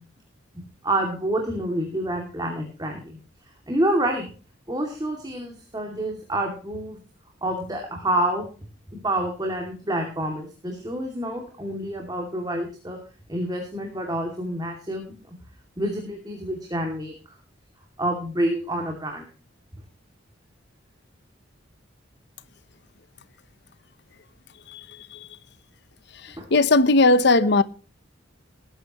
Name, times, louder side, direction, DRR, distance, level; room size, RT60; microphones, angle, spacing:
voice 1, 0.5-3.0 3.7-4.2 4.7-7.0 7.4-8.5 9.0-13.0 13.3-15.0 15.8-17.1 18.0-19.2 26.4-26.5 27.4-27.5, right 1 dB, 20° right, 2.5 m, -28 dB
voice 2, 26.5-27.6, left 2 dB, 60° left, 0.9 m, -17 dB
19.0 x 9.9 x 3.0 m
head